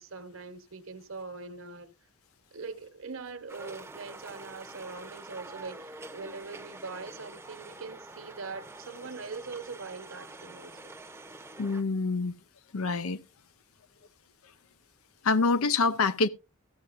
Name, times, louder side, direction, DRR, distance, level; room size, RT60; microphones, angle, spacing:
voice 1, 0.0-1.9 2.5-10.9, right 4 dB, 65° right, 1.1 m, -42 dB
sound 1, 3.5-11.8, right 2 dB, 10° right, 0.7 m, -46 dB
voice 2, 11.6-12.4 12.7-13.2 15.2-16.3, left 4 dB, 80° left, 0.7 m, -26 dB
14.0 x 11.5 x 2.5 m
head